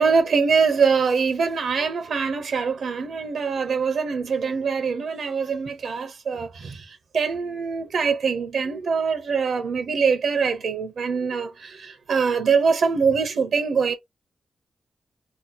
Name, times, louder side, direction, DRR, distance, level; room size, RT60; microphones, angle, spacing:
voice 1, 0.0-6.8 7.1-13.9, right 5 dB, 85° right, 0.7 m, -23 dB
2.8 x 2.0 x 4.0 m
wide cardioid pair, 90°, 0 cm